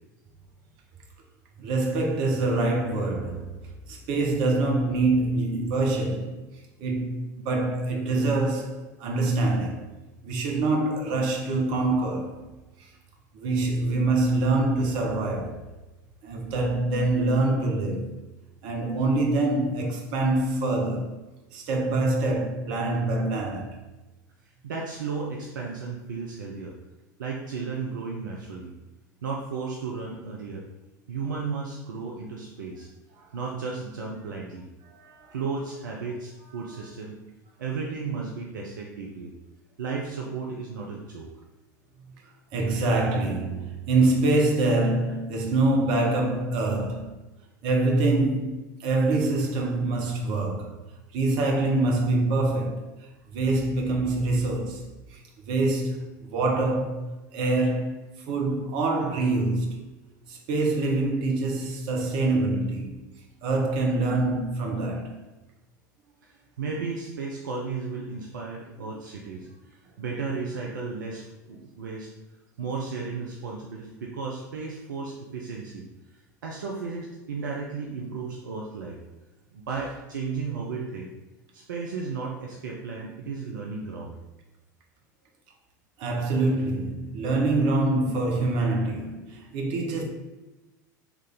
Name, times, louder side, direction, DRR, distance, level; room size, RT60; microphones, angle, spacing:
voice 1, 1.6-3.6 3.9-6.4 6.8-9.9 10.2-12.4 13.3-15.6 16.2-18.2 18.6-21.2 21.5-23.8 34.9-35.3 42.5-47.1 47.6-50.8 51.1-52.9 53.3-55.2 55.5-57.0 57.3-59.8 60.3-63.0 63.4-65.2 68.8-69.0 86.0-90.0, right 2 dB, 55° right, 0.9 m, -25 dB
voice 2, 24.6-26.7 27.2-28.7 29.2-30.7 31.1-32.9 33.3-34.7 35.3-37.2 37.6-39.3 39.8-41.3 66.2-69.5 70.0-72.1 72.6-75.9 76.4-79.0 79.5-81.1 81.5-84.2, right 4 dB, 75° right, 0.6 m, -34 dB
3.5 x 3.2 x 3.7 m
figure-of-eight pair, 80°, 10 cm